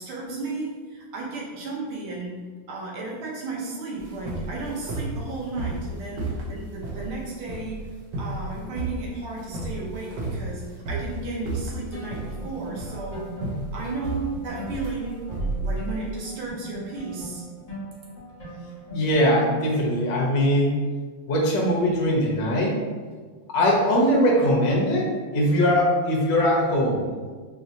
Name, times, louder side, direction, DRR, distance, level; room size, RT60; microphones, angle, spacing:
voice 1, 0.0-2.4 2.7-7.9 8.2-13.3 13.7-17.4, right 3 dB, 85° right, -3 dB, 1.7 m, -34 dB
sound 1, 4.0-16.2, right 2 dB, 70° right, 1.3 m, -32 dB
sound 2, 11.9-19.6, right 1 dB, 45° left, 1.5 m, -40 dB
voice 2, 18.9-20.7 21.3-22.7 23.5-27.0, equal, 65° left, -2 dB, 1.4 m, -21 dB
4.7 x 2.7 x 2.6 m, 1.5 s
omnidirectional pair, 2.2 m